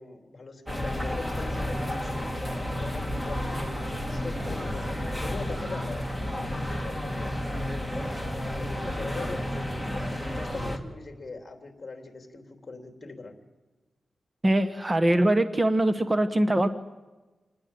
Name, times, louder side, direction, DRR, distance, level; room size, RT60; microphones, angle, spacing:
voice 1, 0.0-7.3 8.3-9.4 10.0-13.3, left 3 dB, 35° left, 4 dB, 3.6 m, -42 dB
sound 1, 0.7-10.8, left 1 dB, 5° right, 2.3 m, -31 dB
voice 2, 14.4-16.7, right 1 dB, 20° right, 10 dB, 1.1 m, -22 dB
28.5 x 19.5 x 7.6 m, 1.2 s
wide cardioid pair, 110°, 0 cm